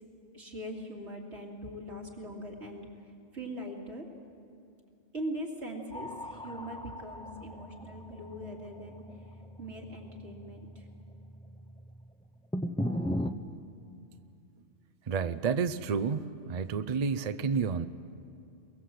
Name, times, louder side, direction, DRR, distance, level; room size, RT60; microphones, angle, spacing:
voice 1, 0.3-2.9 3.3-4.0 5.1-9.0 9.6-10.9, equal, 80° right, -1 dB, 3.0 m, -41 dB
sound 1, 5.9-12.1 12.5-13.3, equal, 5° left, 0.6 m, -38 dB
voice 2, 15.1-17.9, right 5 dB, 45° right, 10 dB, 0.6 m, -30 dB
23.0 x 21.5 x 7.8 m, 2.5 s
omnidirectional pair, 1.1 m